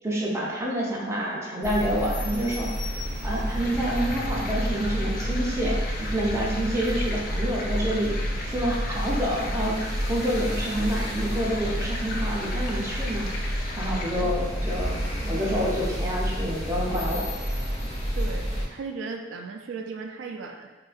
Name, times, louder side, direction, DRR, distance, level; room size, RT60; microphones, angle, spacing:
voice 1, 0.0-2.7 3.2-8.1 8.5-9.8 10.1-13.3 13.8-15.0 15.2-17.2, equal, 15° right, -4 dB, 0.5 m, -28 dB
sound 1, 1.6-18.6, equal, 35° left, 1.0 m, -29 dB
sound 2, 3.6-14.2, left 2 dB, 50° left, 0.3 m, -38 dB
voice 2, 18.2-20.7, right 4 dB, 85° right, 4 dB, 0.3 m, -36 dB
3.5 x 2.3 x 2.4 m, 1.1 s
head